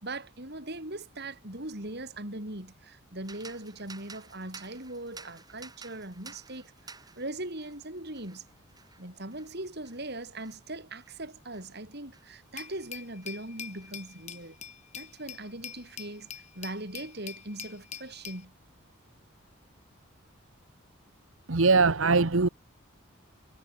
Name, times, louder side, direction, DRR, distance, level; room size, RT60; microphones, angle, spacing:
voice 1, 0.0-8.4 9.0-14.6 14.9-16.3 16.5-18.5, right 2 dB, 50° right, 6.0 m, -40 dB
sound 1, 3.2-12.9 13.2-14.5, right 4 dB, 20° right, 3.7 m, -53 dB
Glass, 12.6-18.4, left 8 dB, 35° left, 3.1 m, -44 dB
voice 2, 21.5-22.5, right 4 dB, 75° right, 1.2 m, -21 dB
head